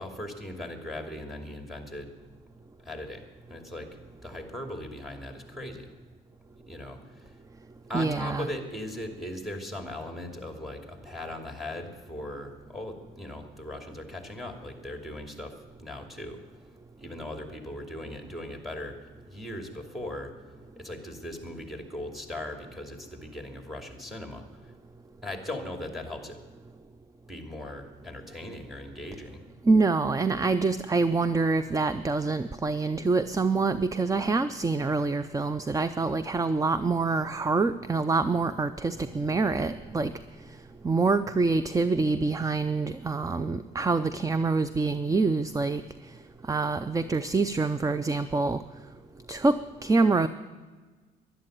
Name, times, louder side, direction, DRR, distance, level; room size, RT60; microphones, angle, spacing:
voice 1, 0.0-2.1 2.8-3.2 3.5-3.9 4.2-5.9 6.7-7.3 7.9-16.4 17.0-19.0 19.3-20.3 20.8-24.7 25.2-26.4 27.3-29.4, left 1 dB, ahead, 4 dB, 2.7 m, -39 dB
voice 2, 7.9-8.5 29.6-40.1 40.8-45.8 46.5-48.6 49.3-50.3, right 3 dB, 15° right, 13 dB, 0.5 m, -26 dB
12.0 x 11.5 x 9.1 m, 1.4 s
cardioid pair, 90°, 20 cm